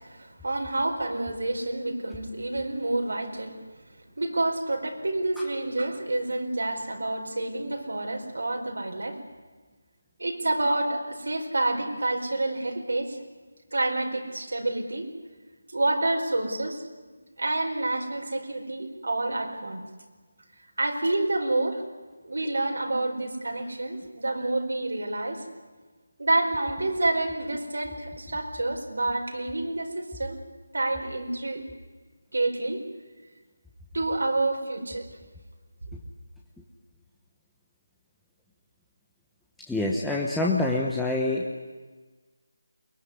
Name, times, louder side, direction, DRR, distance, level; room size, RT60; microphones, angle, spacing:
voice 1, 0.0-3.5 4.2-9.2 10.2-13.2 13.7-15.1 15.7-16.8 17.4-19.8 20.8-21.8 22.2-25.4 26.2-30.4 30.7-31.6 32.3-32.8 33.9-35.1, right 2 dB, 80° right, 2 dB, 4.8 m, -28 dB
voice 2, 39.7-41.6, left 2 dB, ahead, -3 dB, 1.0 m, -26 dB
22.5 x 21.0 x 9.8 m, 1.4 s
figure-of-eight pair, 170°, 0 cm